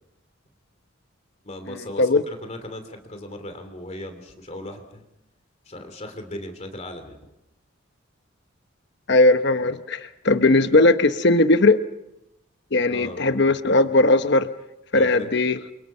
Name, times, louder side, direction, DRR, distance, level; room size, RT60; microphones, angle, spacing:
voice 1, 1.4-5.0 5.6-7.2 12.9-13.2 14.9-15.3, left 1 dB, 35° left, 6 dB, 2.9 m, -37 dB
voice 2, 9.1-11.8 12.7-14.5 14.9-15.6, left 2 dB, 55° left, 9 dB, 1.0 m, -18 dB
30.0 x 24.5 x 5.6 m, 0.88 s
head